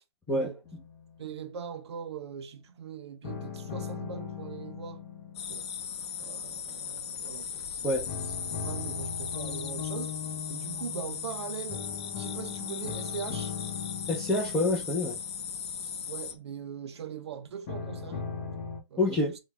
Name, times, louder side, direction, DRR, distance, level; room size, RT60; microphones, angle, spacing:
voice 1, 0.3-0.6 1.2-5.0 5.5-5.7 6.2-8.3 8.6-10.2 10.5-11.9 12.2-13.5 16.1-18.2 18.9-19.4, right 7 dB, 75° right, 0.7 m, -41 dB
sound 1, 0.6-1.8 3.2-7.2 8.1-16.9 17.7-18.8, left 6 dB, 40° left, 0.9 m, -40 dB
sound 2, 5.3-16.3, left 7 dB, 75° left, 0.6 m, -38 dB
voice 2, 14.1-15.2 19.0-19.4, left 2 dB, 5° left, 0.5 m, -27 dB
3.1 x 2.2 x 3.4 m
hypercardioid pair, 150°, 14 cm